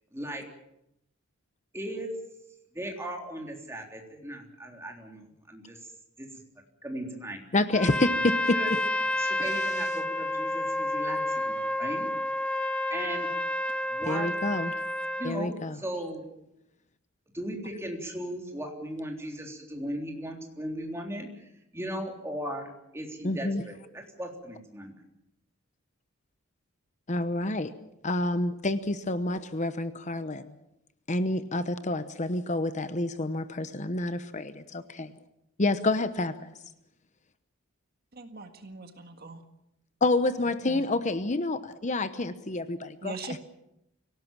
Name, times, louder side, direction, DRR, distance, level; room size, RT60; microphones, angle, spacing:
voice 1, 0.1-0.5 1.7-2.1 2.7-5.8 6.2-6.3 6.8-7.4 8.5-8.8 9.2-12.1 12.9-13.3 13.9-14.3 15.1-16.3 17.3-25.0, right 1 dB, 15° right, 2 dB, 3.6 m, -37 dB
voice 2, 7.5-8.4 9.4-9.7 14.1-14.7 15.2-15.8 23.2-23.6 27.1-27.7 28.0-30.5 31.1-35.1 35.6-36.3 40.0-43.1, left 2 dB, 35° left, 11 dB, 0.9 m, -28 dB
Trumpet, 7.7-15.4, left 1 dB, 5° left, 0.8 m, -30 dB
voice 3, 38.1-39.4 40.6-40.8 43.0-43.4, right 3 dB, 50° right, 6 dB, 1.8 m, -41 dB
25.0 x 17.5 x 7.4 m, 0.84 s
head